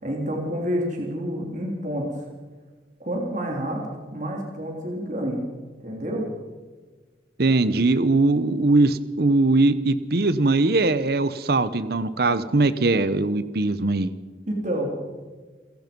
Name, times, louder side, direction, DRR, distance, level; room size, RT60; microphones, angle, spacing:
voice 1, 0.0-2.2 3.0-3.8 4.1-5.4 5.8-6.3 14.5-14.9, equal, 45° right, 0 dB, 3.5 m, -28 dB
voice 2, 7.4-14.1, right 2 dB, 60° right, 14 dB, 0.9 m, -21 dB
29.5 x 17.0 x 5.3 m, 1.4 s
head